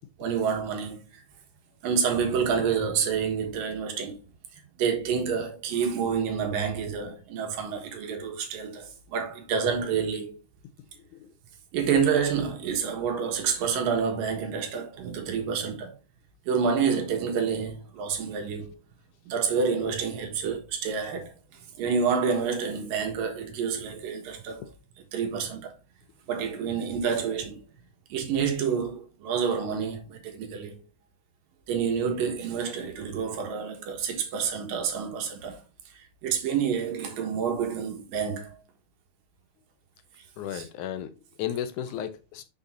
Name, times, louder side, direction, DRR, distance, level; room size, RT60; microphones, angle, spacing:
voice 1, 0.2-1.2 1.8-4.2 4.5-10.3 11.7-16.0 16.5-18.7 19.3-24.6 25.1-25.7 26.3-27.6 28.1-30.8 31.7-35.6 36.2-38.6 40.5-40.7, right 6 dB, 90° right, 3.1 m, -28 dB
voice 2, 40.4-42.4, left 10 dB, 75° left, 2.0 m, -34 dB
6.8 x 6.0 x 2.6 m
omnidirectional pair, 3.9 m